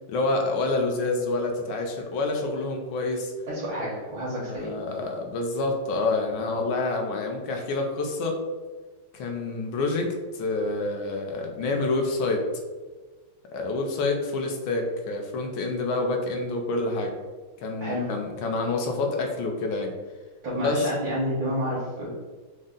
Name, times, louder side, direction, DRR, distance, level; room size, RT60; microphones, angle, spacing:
voice 1, 0.1-3.3 4.3-8.4 9.1-12.4 13.5-17.1 17.6-19.9 20.6-20.9, left 3 dB, 90° left, 2 dB, 1.5 m, -27 dB
voice 2, 3.5-4.7 17.8-18.1 20.4-22.1, equal, 85° right, -8 dB, 1.9 m, -29 dB
5.3 x 2.1 x 3.6 m, 1.3 s
omnidirectional pair, 2.1 m